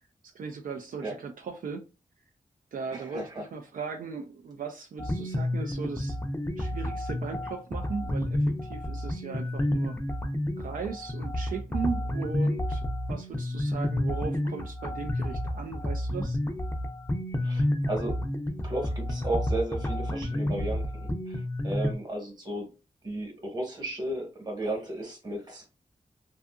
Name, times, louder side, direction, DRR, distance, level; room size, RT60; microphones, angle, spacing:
voice 1, 0.2-1.9 2.7-6.2 6.6-10.0 10.6-16.4, right 5 dB, 75° right, 0.4 m, -37 dB
voice 2, 2.9-3.3 17.4-18.2 18.6-22.7 23.0-25.7, right 1 dB, 30° right, 1.1 m, -34 dB
sound 1, 5.0-21.9, left 1 dB, 15° left, 0.5 m, -30 dB
2.6 x 2.4 x 2.3 m
wide cardioid pair, 80°, 14 cm